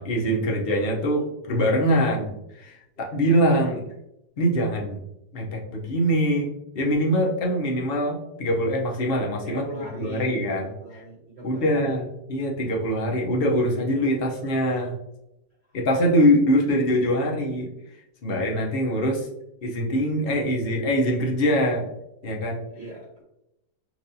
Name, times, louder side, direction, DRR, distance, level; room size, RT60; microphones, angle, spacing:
voice 1, 0.0-3.8 4.4-5.0 5.3-6.5 6.7-9.6 9.9-11.0 11.4-14.9 15.7-17.7 18.2-19.3 19.6-21.9 22.2-22.6, equal, 45° left, -1 dB, 0.9 m, -23 dB
voice 2, 9.4-11.9 15.7-15.8 22.7-23.1, equal, 45° right, -4 dB, 1.0 m, -39 dB
5.9 x 2.6 x 2.7 m, 0.85 s
omnidirectional pair, 1.7 m